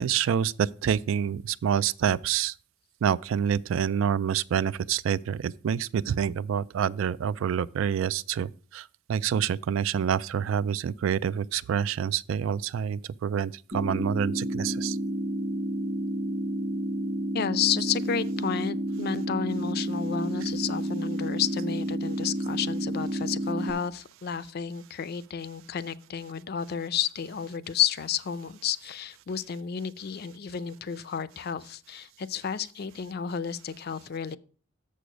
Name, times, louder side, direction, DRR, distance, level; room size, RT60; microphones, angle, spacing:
voice 1, 0.0-2.5 3.0-15.0, right 8 dB, 90° right, 0.3 m, -27 dB
sound 1, 13.7-23.7, right 1 dB, 35° right, 0.9 m, -30 dB
voice 2, 17.3-34.4, left 8 dB, 55° left, 0.4 m, -31 dB
6.9 x 6.5 x 5.0 m
head